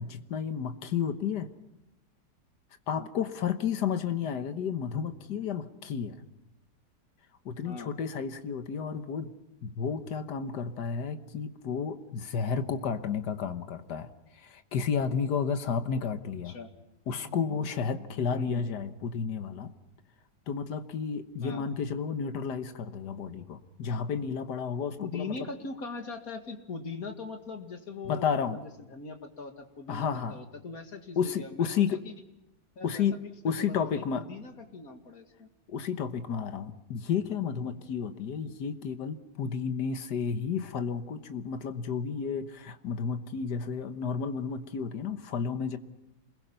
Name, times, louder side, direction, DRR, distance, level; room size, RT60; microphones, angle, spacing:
voice 1, 0.0-1.5 2.9-6.2 7.4-9.3 9.6-16.5 17.1-19.7 20.5-25.3 28.0-28.6 29.9-30.4 31.2-32.0 32.8-33.2 33.4-34.3 35.7-45.8, left 6 dB, 75° left, 10 dB, 1.8 m, -32 dB
voice 2, 18.3-18.6 21.4-21.6 25.0-28.6 28.9-32.1 32.8-35.5, left 4 dB, 55° left, 5 dB, 2.6 m, -41 dB
28.0 x 21.5 x 5.7 m, 0.94 s
omnidirectional pair, 1.8 m